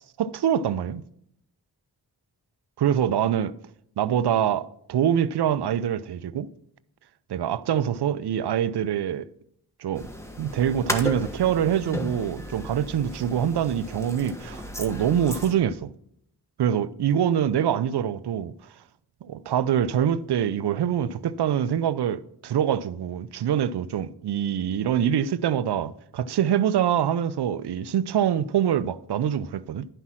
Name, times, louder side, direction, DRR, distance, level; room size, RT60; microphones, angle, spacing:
voice 1, 0.2-1.0 2.8-3.6 4.0-6.5 7.3-9.3 9.8-10.1 10.4-15.9 16.6-18.5 19.2-29.9, right 9 dB, 75° right, 0.5 m, -25 dB
sound 1, 10.0-15.5, equal, 5° left, 1.3 m, -34 dB
11.0 x 5.7 x 6.1 m
cardioid pair, 45°, 40 cm